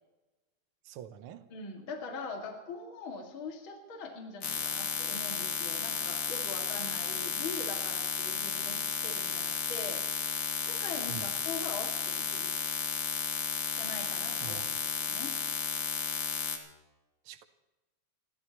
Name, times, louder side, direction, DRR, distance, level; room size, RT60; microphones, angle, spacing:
voice 1, 0.8-1.5 11.1-11.2 14.4-14.6 17.2-17.4, right 10 dB, 75° right, 8 dB, 1.2 m, -44 dB
voice 2, 1.5-10.0 10.6-12.5 13.7-14.6 15.0-15.3, left 4 dB, 45° left, 1 dB, 2.7 m, -42 dB
sound 1, 4.4-16.6, left 7 dB, 80° left, 3.1 m, -33 dB
29.0 x 13.5 x 3.0 m, 1.1 s
omnidirectional pair, 3.5 m